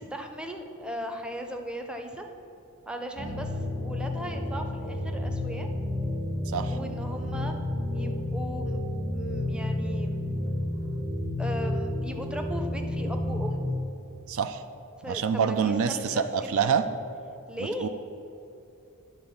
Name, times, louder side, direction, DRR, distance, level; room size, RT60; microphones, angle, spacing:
voice 1, 0.0-2.3 2.9-3.5 3.8-5.7 6.7-7.6 7.9-8.8 9.1-10.2 11.4-13.7 15.0-16.6 17.5-17.9, equal, 5° right, 4 dB, 0.5 m, -37 dB
sound 1, 3.2-13.7, left 1 dB, 50° right, 1.4 m, -31 dB
voice 2, 6.5-6.8 14.3-14.6 15.0-16.9 17.8-17.9, right 6 dB, 65° right, 9 dB, 0.4 m, -26 dB
9.8 x 3.8 x 7.0 m, 2.7 s
head